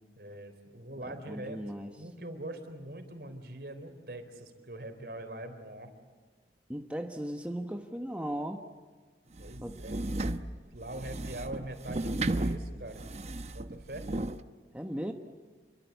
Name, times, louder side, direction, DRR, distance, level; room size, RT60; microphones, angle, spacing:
voice 1, 0.2-1.6 2.0-5.9 9.4-10.2 10.7-13.0 13.5-14.1, right 1 dB, 60° right, 7 dB, 3.8 m, -43 dB
voice 2, 1.0-1.9 6.7-8.6 9.6-9.8 14.7-15.1, equal, 10° right, 4 dB, 1.2 m, -37 dB
sound 1, 9.4-14.4, right 2 dB, 40° right, 0.9 m, -34 dB
28.5 x 23.5 x 8.2 m, 1.4 s
head